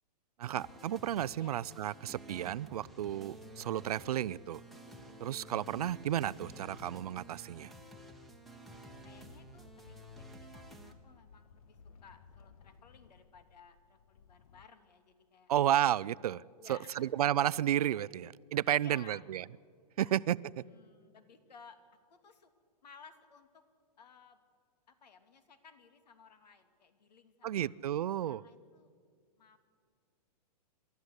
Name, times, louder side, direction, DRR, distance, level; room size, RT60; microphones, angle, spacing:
voice 1, 0.4-4.6 5.2-7.7 15.5-16.4 16.7-19.4 20.0-20.6 27.4-28.4, right 11 dB, 65° right, 21 dB, 0.5 m, -32 dB
sound 1, 0.6-10.9, right 1 dB, ahead, 1.2 m, -52 dB
voice 2, 9.0-15.5 16.6-17.1 18.8-19.2 20.0-20.2 20.5-21.8 22.1-22.5 22.8-23.6 24.0-24.4 24.9-27.7 28.2-28.9 29.4-29.6, left 6 dB, 80° left, 9 dB, 2.6 m, -58 dB
sound 2, 9.0-14.7, left 5 dB, 60° left, 1.0 m, -59 dB
28.0 x 13.0 x 8.1 m, 2.1 s
hypercardioid pair, 160°, 21 cm